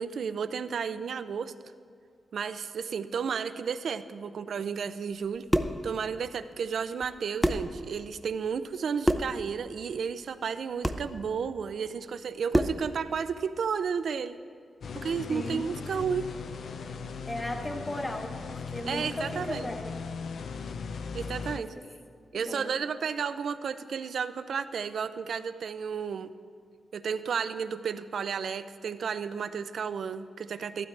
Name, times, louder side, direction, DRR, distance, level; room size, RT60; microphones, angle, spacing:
voice 1, 0.0-1.5 2.3-5.5 5.8-14.4 14.9-16.3 18.9-19.7 21.1-21.7 22.3-26.3 26.9-30.9, right 6 dB, 70° right, 12 dB, 0.4 m, -32 dB
sound 1, 5.2-5.8 7.0-7.1 7.4-7.7 9.0-9.4 10.8-11.1 12.5-12.9, equal, ahead, 0.4 m, -26 dB
sound 2, 14.8-21.6, left 5 dB, 70° left, 0.4 m, -38 dB
voice 2, 15.3-15.6 17.3-20.0 21.4-21.6 22.4-22.7, left 1 dB, 15° left, 3 dB, 0.9 m, -36 dB
14.5 x 12.5 x 3.3 m, 2.1 s
wide cardioid pair, 145°, 0 cm